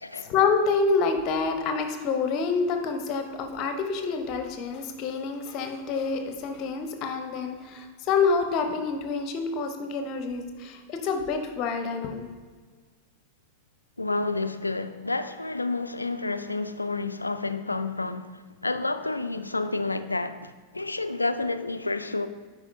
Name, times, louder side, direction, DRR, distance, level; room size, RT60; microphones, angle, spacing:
voice 1, 0.2-12.3, left 4 dB, 40° left, 0.8 m, -27 dB
voice 2, 14.0-22.3, left 3 dB, 80° left, 0.3 m, -30 dB
10.0 x 4.7 x 2.6 m
figure-of-eight pair, 90°, 0 cm